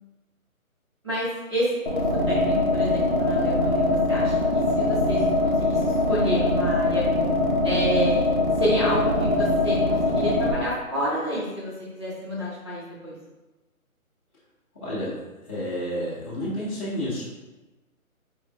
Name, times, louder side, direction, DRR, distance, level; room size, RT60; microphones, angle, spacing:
voice 1, 1.0-7.0 7.6-8.3 8.6-13.1, equal, 20° right, -10 dB, 1.0 m, -29 dB
sound 1, 1.9-10.5, left 2 dB, 35° left, 0.5 m, -22 dB
voice 2, 14.7-17.2, equal, 10° left, -18 dB, 1.0 m, -30 dB
4.8 x 3.0 x 2.6 m, 1.1 s
hypercardioid pair, 175°, 43 cm